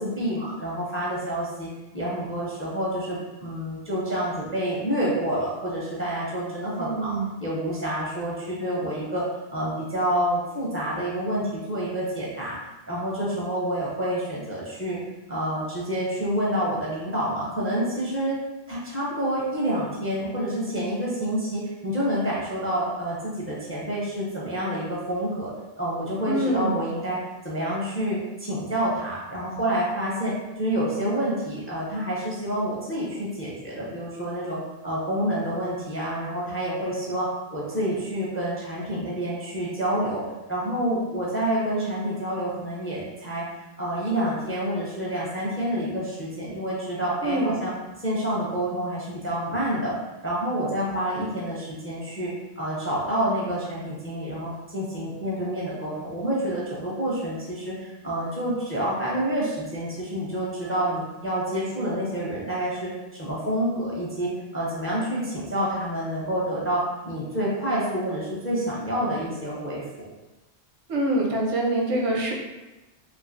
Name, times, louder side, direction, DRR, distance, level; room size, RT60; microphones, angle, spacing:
voice 1, 0.0-12.6 12.9-15.0 15.3-18.4 18.7-27.2 27.4-43.5 43.8-47.7 48.0-49.9 50.2-70.1, right 1 dB, 20° left, -6 dB, 0.4 m, -28 dB
voice 2, 6.8-7.3 26.3-26.8 47.2-47.6 70.9-72.3, right 1 dB, 85° right, -1 dB, 0.9 m, -25 dB
3.1 x 2.5 x 2.5 m, 1.1 s
omnidirectional pair, 1.1 m